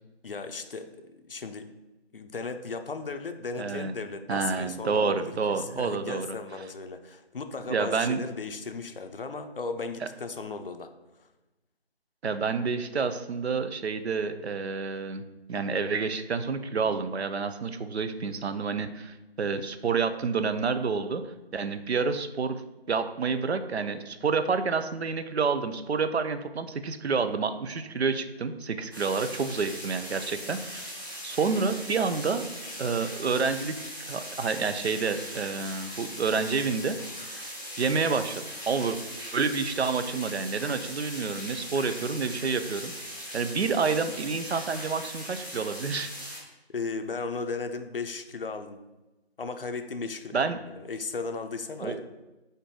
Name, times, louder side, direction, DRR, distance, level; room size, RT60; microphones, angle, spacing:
voice 1, 0.2-1.7 2.1-10.9 11.2-11.3 46.7-48.9 49.4-52.0, left 4 dB, 60° left, 7 dB, 0.5 m, -36 dB
voice 2, 3.6-3.9 4.3-6.3 7.7-8.2 12.2-15.2 15.5-22.6 22.9-30.9 31.2-32.4 32.8-33.7 34.0-37.0 37.8-39.0 39.3-42.9 43.3-46.1 50.3-50.6 51.8-52.0, right 5 dB, 80° right, 10 dB, 0.5 m, -29 dB
sound 1, 28.9-46.4, equal, 20° right, 0.8 m, -40 dB
4.3 x 2.6 x 4.6 m, 1.0 s
figure-of-eight pair, 165°, 32 cm